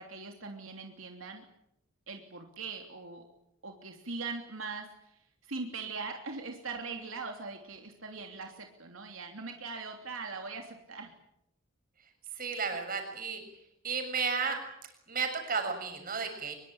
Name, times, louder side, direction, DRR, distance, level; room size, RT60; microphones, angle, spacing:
voice 1, 0.0-1.4 2.1-3.2 3.6-11.1, right 4 dB, 85° right, 3 dB, 3.1 m, -41 dB
voice 2, 12.3-13.4 13.8-14.6 15.1-16.6, right 5 dB, 45° right, 6 dB, 6.6 m, -33 dB
24.5 x 22.5 x 8.8 m, 0.79 s
head